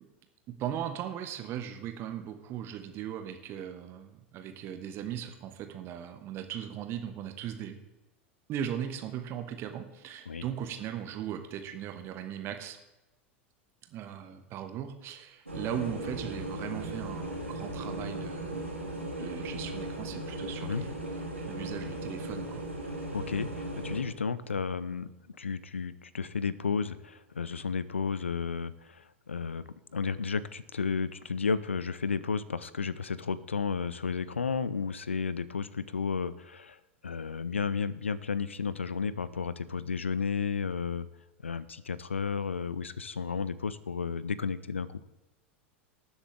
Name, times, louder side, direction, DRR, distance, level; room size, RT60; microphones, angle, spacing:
voice 1, 0.5-7.8 8.5-12.8 13.9-18.7 19.2-21.0 21.5-22.6, right 10 dB, 40° right, 7 dB, 1.5 m, -38 dB
sound 1, 15.5-24.0, right 1 dB, 85° right, 2.5 m, -37 dB
voice 2, 23.1-25.1 25.4-29.6 29.9-36.8 37.0-41.1 41.4-45.0, left 5 dB, 80° left, 18 dB, 0.6 m, -32 dB
19.5 x 7.3 x 3.6 m, 1.0 s
figure-of-eight pair, 85°, 7 cm